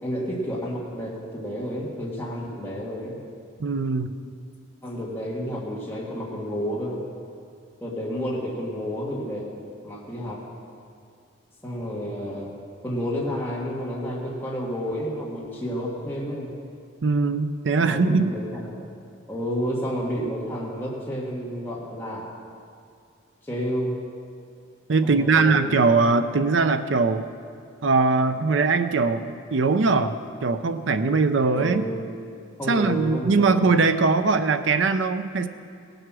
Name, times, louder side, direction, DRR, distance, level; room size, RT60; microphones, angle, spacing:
voice 1, 0.0-3.2 4.8-7.0 7.8-9.5 9.8-10.4 11.6-12.5 12.8-16.5 17.8-18.9 19.3-22.2 23.4-24.0 25.0-25.8 31.5-31.9 32.6-33.7, equal, 10° left, -6 dB, 1.7 m, -30 dB
voice 2, 3.6-4.1 17.0-18.3 24.9-27.2 27.8-31.8 32.7-35.5, right 4 dB, 70° right, 10 dB, 0.6 m, -21 dB
16.5 x 7.9 x 6.1 m, 2.4 s
head